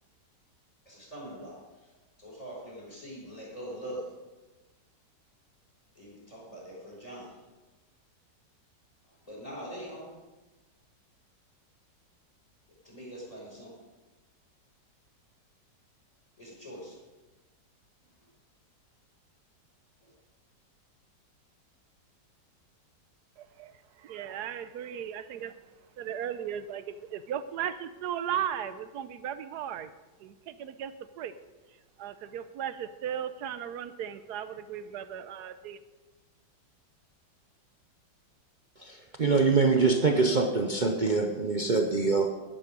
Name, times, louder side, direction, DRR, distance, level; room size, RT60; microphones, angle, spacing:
voice 1, 0.8-4.1 5.9-7.5 9.0-10.2 12.8-13.8 16.4-17.0 18.0-18.3 20.0-20.1, equal, 20° left, -5 dB, 5.3 m, -43 dB
voice 2, 23.6-25.5 26.0-29.9 30.2-31.3 32.0-35.8, right 9 dB, 70° right, 13 dB, 1.2 m, -36 dB
voice 3, 38.8-42.3, right 4 dB, 55° right, 4 dB, 0.5 m, -24 dB
11.5 x 11.0 x 5.2 m, 1.2 s
omnidirectional pair, 1.9 m